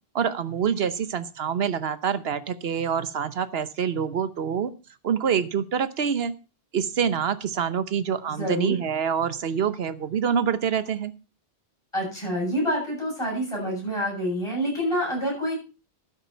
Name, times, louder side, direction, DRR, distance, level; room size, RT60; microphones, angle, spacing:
voice 1, 0.1-4.7 5.0-6.3 6.7-11.1, right 7 dB, 75° right, 14 dB, 1.1 m, -26 dB
voice 2, 8.4-8.7 11.9-15.5, equal, 30° left, -2 dB, 7.6 m, -27 dB
12.5 x 9.6 x 4.5 m, 0.32 s
omnidirectional pair, 1.0 m